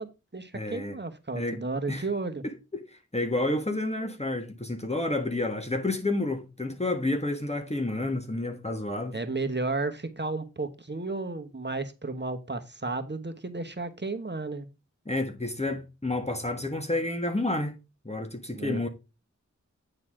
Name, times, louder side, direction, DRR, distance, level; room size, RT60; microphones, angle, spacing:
voice 1, 0.0-2.4 9.1-14.7 18.5-18.8, right 3 dB, 35° right, 1.2 m, -33 dB
voice 2, 0.5-1.0 1.3-1.6 1.9-2.1 2.4-2.8 3.1-9.2 15.0-17.7 18.0-18.9, left 2 dB, 20° left, 1.4 m, -30 dB
9.0 x 4.0 x 4.9 m
wide cardioid pair, 40°, 29 cm